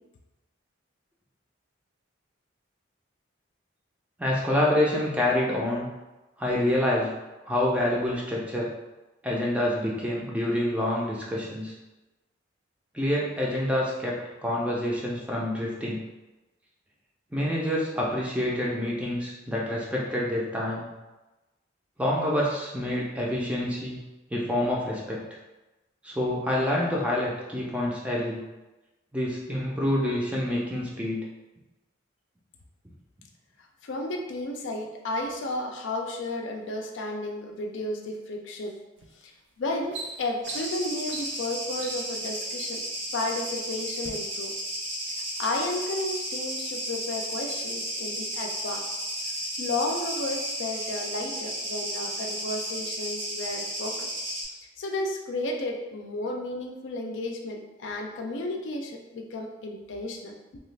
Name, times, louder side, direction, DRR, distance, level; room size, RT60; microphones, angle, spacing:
voice 1, 4.2-5.9 6.4-7.2 7.5-8.7 9.2-11.7 12.9-16.0 17.3-20.9 22.0-24.0 24.3-25.2 26.0-28.4 29.1-31.2, left 1 dB, 5° right, -4 dB, 0.4 m, -27 dB
voice 2, 33.8-38.7 39.2-39.3 39.6-42.8 43.1-44.5 45.0-45.1 45.4-48.8 49.6-54.0 54.8-60.3, left 2 dB, 70° left, 2 dB, 0.4 m, -33 dB
sound 1, 39.0-39.2 39.6-42.2 43.0-43.6 44.0-44.1, right 3 dB, 65° right, 0.4 m, -41 dB
sound 2, 40.4-54.4, right 1 dB, 85° right, 1.4 m, -33 dB
2.9 x 2.3 x 3.2 m, 1.1 s
head